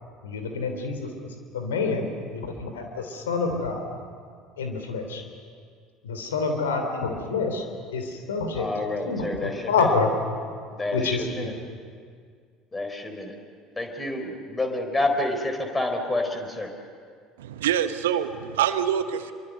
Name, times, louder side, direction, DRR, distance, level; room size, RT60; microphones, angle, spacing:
voice 1, 0.2-3.9 4.6-5.2 6.0-7.7 7.9-8.7 9.1-10.1 10.8-11.6, left 4 dB, 75° left, 5 dB, 3.1 m, -27 dB
voice 2, 8.6-9.9 10.7-11.5 12.7-13.3 13.8-16.7, left 2 dB, 15° left, 4 dB, 4.4 m, -28 dB
voice 3, 17.4-19.3, right 9 dB, 70° right, 11 dB, 1.1 m, -25 dB
26.0 x 24.0 x 6.7 m, 2.1 s
figure-of-eight pair, 65°, 0 cm